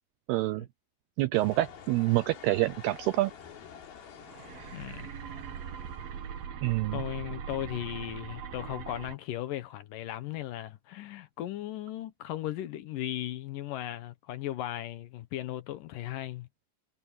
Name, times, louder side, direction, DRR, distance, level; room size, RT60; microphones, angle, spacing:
voice 1, 0.3-0.7 1.2-3.3 6.6-7.0, right 18 dB, 85° right, 2.3 m, -27 dB
sound 1, 1.3-6.5, left 7 dB, 60° left, 4.4 m, -49 dB
sound 2, 4.2-9.2, right 7 dB, 60° right, 3.1 m, -41 dB
voice 2, 4.7-5.1 6.9-16.5, left 13 dB, 75° left, 2.0 m, -37 dB
omnidirectional pair, 5.3 m